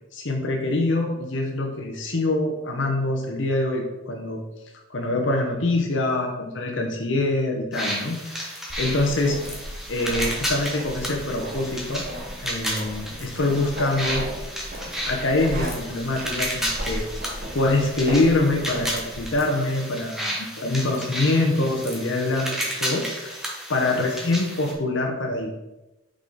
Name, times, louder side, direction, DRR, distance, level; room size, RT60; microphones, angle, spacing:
voice 1, 0.1-4.4 4.9-9.4 9.9-12.0 12.4-14.3 15.1-17.0 17.5-25.6, left 2 dB, 60° left, 1 dB, 0.9 m, -25 dB
sound 1, 7.7-24.7, equal, ahead, 0.9 m, -32 dB
sound 2, 8.7-19.4, equal, 40° right, 0.9 m, -36 dB
5.4 x 5.0 x 3.9 m, 1.0 s
head